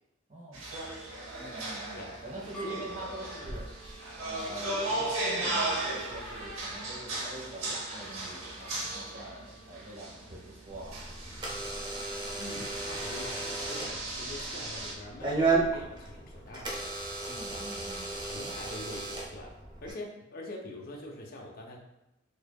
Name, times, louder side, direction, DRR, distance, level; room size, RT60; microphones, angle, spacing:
voice 1, 0.3-0.9 1.4-3.7 4.2-11.0 17.3-18.6, right 1 dB, 40° right, -3 dB, 1.0 m, -44 dB
sound 1, 0.5-14.9, right 2 dB, 85° right, 0.8 m, -37 dB
voice 2, 1.9-2.9 12.4-16.9 18.2-21.8, left 1 dB, 50° left, -1 dB, 0.5 m, -44 dB
sound 2, 2.2-10.4, right 2 dB, 5° left, 1.5 m, -52 dB
Door / Alarm, 10.7-19.9, right 3 dB, 20° right, 0.6 m, -34 dB
4.6 x 2.6 x 2.2 m, 0.92 s
head